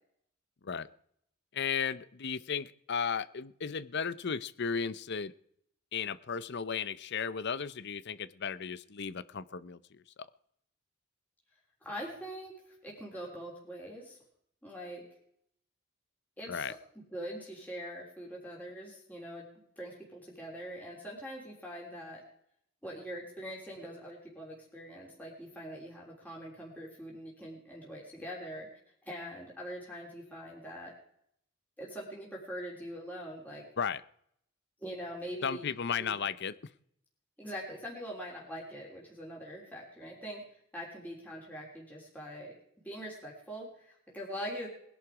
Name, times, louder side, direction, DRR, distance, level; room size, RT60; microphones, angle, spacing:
voice 1, 1.5-5.3 5.9-10.0 16.5-16.7 33.8-34.0 35.4-36.5, left 6 dB, 50° left, 17 dB, 0.6 m, -35 dB
voice 2, 11.8-14.2 14.6-15.1 16.4-16.8 17.1-19.5 19.8-22.2 22.8-28.7 29.0-31.0 31.8-33.7 34.8-35.7 36.0-36.2 37.4-42.6 42.8-44.7, equal, 10° left, -4 dB, 3.5 m, -43 dB
20.5 x 11.0 x 4.9 m, 0.69 s
head